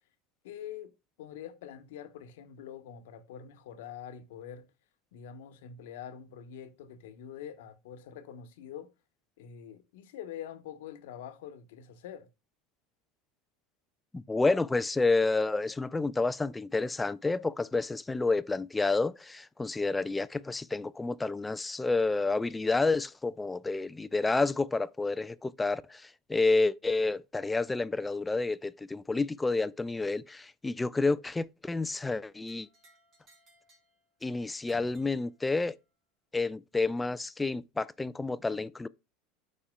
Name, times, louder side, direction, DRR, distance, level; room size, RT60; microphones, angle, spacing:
voice 1, 0.4-0.9 1.2-4.7 5.1-8.9 9.4-12.3, left 9 dB, 85° left, 1.0 m, -45 dB
voice 2, 14.1-32.7 34.2-35.8 36.3-38.9, left 3 dB, 10° left, 0.3 m, -29 dB
sound 1, 32.5-35.8, right 2 dB, 40° right, 3.8 m, -64 dB
12.5 x 4.3 x 2.2 m
supercardioid pair, 120°, 0 cm